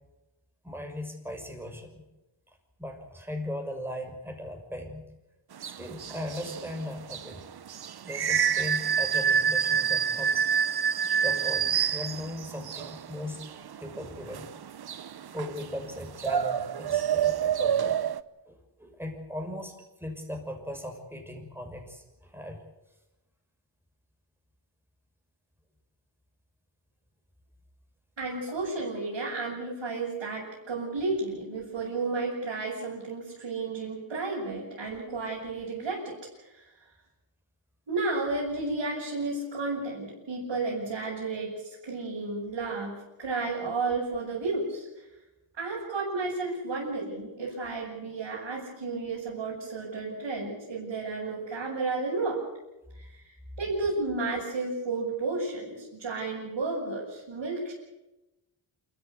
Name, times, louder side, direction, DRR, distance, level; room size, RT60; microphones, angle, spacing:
voice 1, 0.6-2.0 2.8-5.0 5.6-7.4 8.0-10.5 11.2-13.4 13.8-14.5 15.3-18.0 18.5-22.6, left 1 dB, 5° right, 3 dB, 6.1 m, -38 dB
sound 1, 5.5-18.2, right 7 dB, 55° right, 0.8 m, -28 dB
voice 2, 28.2-36.7 37.9-44.9 45.6-52.4 53.0-53.2 53.6-57.7, right 3 dB, 70° right, -6 dB, 7.8 m, -32 dB
28.0 x 14.0 x 8.3 m, 1.0 s
cardioid pair, 75°, 48 cm